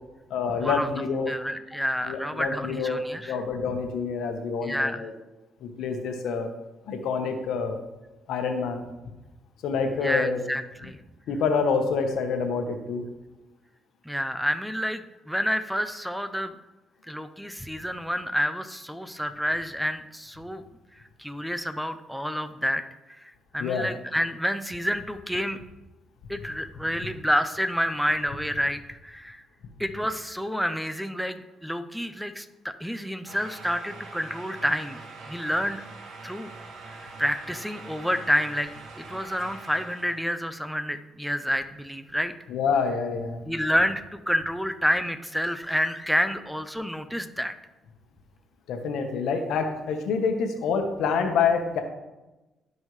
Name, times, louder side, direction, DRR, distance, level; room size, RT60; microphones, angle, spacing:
voice 1, 0.3-1.3 2.0-3.0 3.3-5.1 5.6-6.5 6.9-7.8 8.3-8.8 9.6-10.4 11.3-13.0 23.6-23.9 42.5-43.4 48.7-51.8, left 5 dB, 80° left, 5 dB, 1.2 m, -27 dB
voice 2, 1.3-3.4 4.6-5.1 10.0-11.0 14.1-16.6 17.1-20.6 21.2-22.8 23.1-23.2 23.5-25.6 26.3-29.4 29.8-35.0 35.3-35.8 36.2-36.5 36.9-42.3 43.5-47.5, equal, ahead, 10 dB, 0.6 m, -29 dB
sound 1, 33.2-40.3, right 3 dB, 70° right, 1.8 m, -43 dB
16.0 x 5.4 x 3.2 m, 1.0 s
cardioid pair, 90°, 0 cm